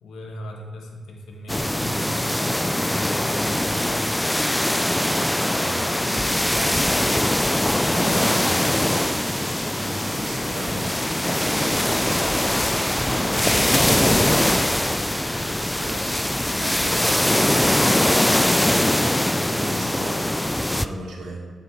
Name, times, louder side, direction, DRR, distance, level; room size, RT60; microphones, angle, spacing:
voice 1, 0.0-4.1, equal, 80° left, 1 dB, 1.1 m, -39 dB
sound 1, 1.5-20.9, left 1 dB, 10° left, 0.3 m, -22 dB
sound 2, 2.0-4.9 5.7-8.5 9.4-12.2 13.0-15.9 16.7-19.6 20.4-20.8, right 1 dB, 15° right, 1.8 m, -46 dB
voice 2, 5.5-7.2 7.9-8.7 9.7-12.9 13.1-21.5, right 2 dB, 75° right, -2 dB, 1.5 m, -36 dB
8.4 x 3.9 x 4.4 m, 1.4 s
supercardioid pair, 45°, 0 cm